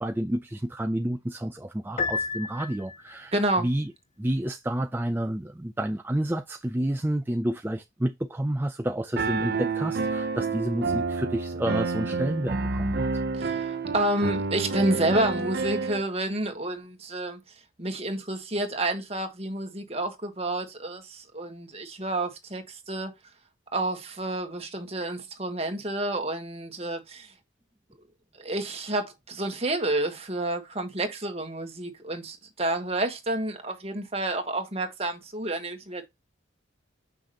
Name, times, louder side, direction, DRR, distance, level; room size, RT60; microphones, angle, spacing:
voice 1, 0.0-3.3 3.6-3.9 4.2-13.1, right 1 dB, 10° right, 0.4 m, -29 dB
Piano, 2.0-3.2, left 4 dB, 35° left, 0.6 m, -31 dB
voice 2, 3.3-3.7 13.3-17.4 17.8-23.1 23.7-27.3 28.4-36.1, right 1 dB, 30° right, 1.5 m, -29 dB
Piano 2, 9.2-16.0, right 4 dB, 50° right, 0.8 m, -29 dB
6.7 x 6.1 x 2.9 m
head